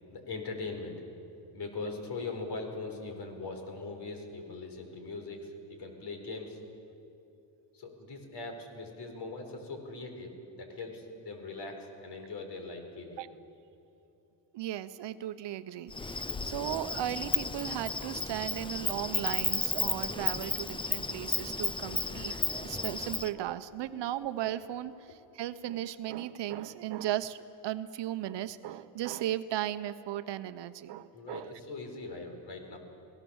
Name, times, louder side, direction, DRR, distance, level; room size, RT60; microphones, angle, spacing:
voice 1, 0.1-1.0 1.5-6.6 7.7-13.2 21.8-22.2 31.1-32.8, left 3 dB, 55° left, 4 dB, 4.5 m, -41 dB
voice 2, 14.5-27.4 27.6-31.6, right 12 dB, 60° right, 12 dB, 0.9 m, -36 dB
Insect, 15.9-23.3, left 3 dB, 10° left, 0.6 m, -33 dB
24.5 x 18.0 x 7.2 m, 2.8 s
cardioid pair, 105°, 48 cm